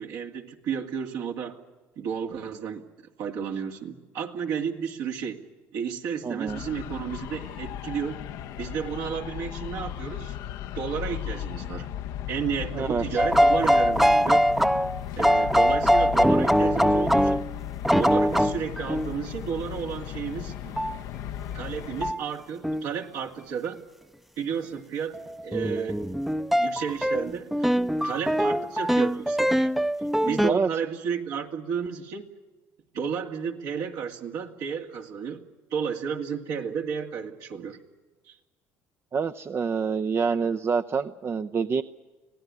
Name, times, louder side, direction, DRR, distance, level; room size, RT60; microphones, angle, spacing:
voice 1, 0.0-1.6 2.0-2.8 3.2-5.4 5.7-8.2 8.6-10.3 10.8-11.9 12.3-14.5 15.2-17.4 18.0-20.7 21.5-23.8 24.4-25.2 25.4-26.2 26.6-27.5 28.0-29.7 30.2-32.2 32.9-35.4 35.7-37.8 38.3-38.4, right 7 dB, 70° right, 3 dB, 2.4 m, -32 dB
voice 2, 6.2-6.6 12.7-13.0 30.5-30.7 39.1-41.8, right 5 dB, 40° right, 8 dB, 0.7 m, -26 dB
sound 1, 6.5-22.1, left 11 dB, 70° left, 0.8 m, -36 dB
sound 2, 13.2-17.5 17.8-19.1 20.8-21.0 22.0-22.2 22.6-22.9 25.1-30.5, equal, 5° right, 0.7 m, -22 dB
25.5 x 17.5 x 9.7 m, 1.3 s
hypercardioid pair, 70°, 7 cm